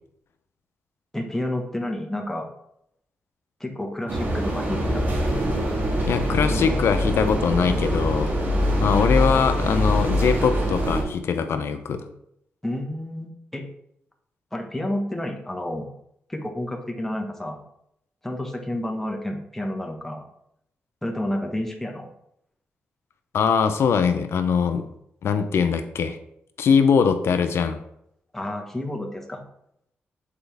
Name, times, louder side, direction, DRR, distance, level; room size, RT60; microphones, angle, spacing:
voice 1, 1.1-2.5 3.6-5.1 12.6-13.6 14.5-15.9 16.3-17.6 18.2-20.2 21.0-22.1 28.3-29.4, left 1 dB, 5° left, 1 dB, 1.1 m, -30 dB
sound 1, 4.1-11.0, equal, 45° right, 1.9 m, -23 dB
voice 2, 6.0-8.3 8.8-12.0 23.3-24.8 25.2-26.2 26.6-27.8, left 6 dB, 75° left, 8 dB, 0.6 m, -22 dB
6.8 x 4.5 x 3.4 m, 0.75 s
cardioid pair, 80°, 4 cm